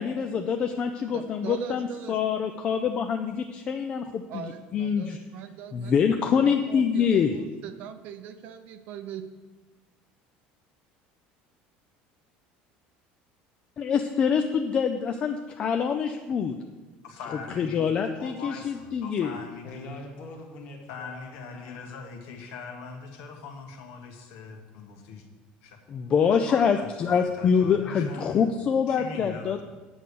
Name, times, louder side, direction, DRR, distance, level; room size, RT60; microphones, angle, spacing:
voice 1, 0.0-5.2 5.7-7.4 13.8-16.6 17.6-19.3 25.9-29.6, left 6 dB, 25° left, 6 dB, 0.4 m, -25 dB
voice 2, 1.1-2.6 4.3-6.0 6.4-9.2, right 8 dB, 45° right, 9 dB, 0.7 m, -41 dB
voice 3, 17.0-17.8 18.2-19.9 20.9-25.3 25.6-25.8 27.0-28.4 28.9-29.6, left 5 dB, 70° left, 4 dB, 1.4 m, -42 dB
voice 4, 19.4-21.8, left 2 dB, 40° left, 1 dB, 1.7 m, -43 dB
8.7 x 6.3 x 6.8 m, 1.2 s
cardioid pair, 180°, 4 cm